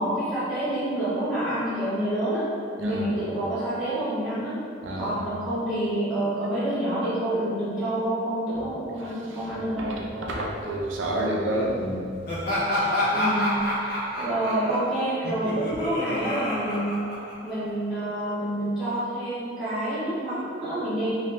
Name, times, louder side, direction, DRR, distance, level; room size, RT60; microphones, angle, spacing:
voice 1, 0.0-2.4 2.9-4.6 5.0-9.9 11.1-11.4 13.1-13.6 14.2-17.0 17.4-21.1, right 1 dB, 5° right, -15 dB, 0.9 m, -28 dB
voice 2, 4.8-5.1 8.6-8.7 9.5-12.1, right 1 dB, 80° right, -2 dB, 0.5 m, -29 dB
Laughter, 12.3-17.7, left 1 dB, 55° left, 0.8 m, -28 dB
2.9 x 2.3 x 3.2 m, 2.3 s
head